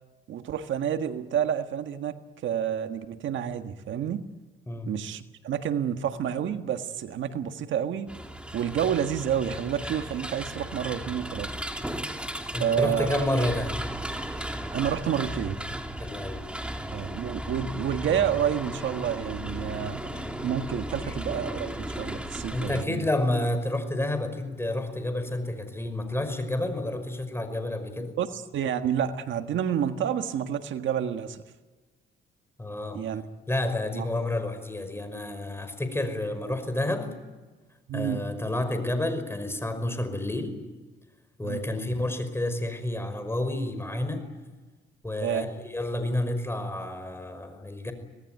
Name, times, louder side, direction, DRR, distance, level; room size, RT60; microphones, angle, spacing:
voice 1, 0.3-2.1 2.4-4.2 4.9-8.1 8.5-11.5 12.6-13.3 14.7-15.6 16.9-20.0 20.4-23.1 28.2-31.4 32.9-33.2 33.9-34.0 37.9-38.2 41.4-41.6 45.2-45.5, right 9 dB, 70° right, 8 dB, 1.6 m, -29 dB
sound 1, 8.1-22.8, right 1 dB, 5° right, 2.8 m, -35 dB
voice 2, 12.5-13.9 16.0-16.4 21.0-21.1 22.5-28.2 32.6-33.0 33.5-37.2 37.9-40.6 41.4-44.3 45.0-47.9, left 1 dB, 10° left, 9 dB, 5.4 m, -30 dB
25.0 x 19.0 x 9.3 m, 1.3 s
cardioid pair, 90°, 20 cm